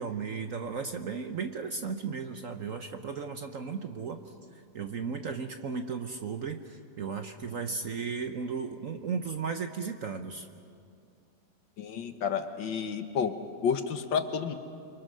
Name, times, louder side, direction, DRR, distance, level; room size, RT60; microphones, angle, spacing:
voice 1, 0.0-10.5, right 5 dB, 55° right, 7 dB, 1.0 m, -35 dB
voice 2, 11.8-13.3 13.6-14.5, left 6 dB, 70° left, 8 dB, 1.9 m, -30 dB
29.0 x 24.0 x 6.3 m, 2.5 s
omnidirectional pair, 2.2 m